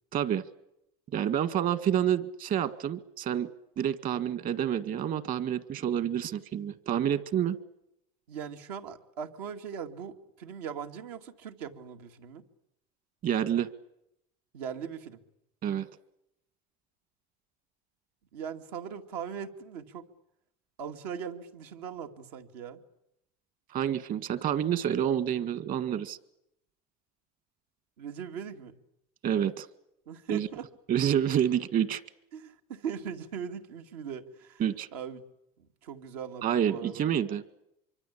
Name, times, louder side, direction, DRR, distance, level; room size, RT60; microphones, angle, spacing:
voice 1, 0.1-0.4 1.1-3.5 3.8-7.6 13.2-13.7 15.6-15.9 23.7-26.2 29.2-29.7 30.3-30.5 30.9-32.0 34.6-34.9 36.4-37.4, right 9 dB, 45° right, 13 dB, 1.9 m, -28 dB
voice 2, 8.3-12.4 14.5-15.2 18.3-20.0 20.8-22.8 28.0-28.8 30.1-30.7 32.3-34.6 34.9-35.2 35.6-37.0, right 7 dB, 85° right, 5 dB, 2.7 m, -40 dB
25.5 x 24.5 x 8.6 m, 0.81 s
supercardioid pair, 120°, 19 cm